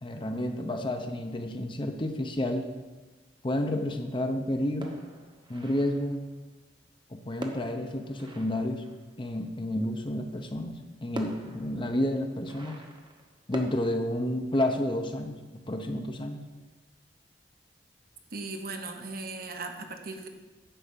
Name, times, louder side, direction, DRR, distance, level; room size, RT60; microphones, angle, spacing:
voice 1, 0.0-2.7 3.4-5.0 5.5-6.2 7.1-8.8 9.2-12.8 13.5-16.4, left 1 dB, 25° left, 5 dB, 0.7 m, -30 dB
sound 1, 4.8-6.3 7.4-9.4 10.5-10.6 11.2-13.8, right 1 dB, 25° right, 0.9 m, -44 dB
voice 2, 18.3-20.3, right 3 dB, 55° right, 5 dB, 1.0 m, -38 dB
10.0 x 4.8 x 7.4 m, 1.2 s
head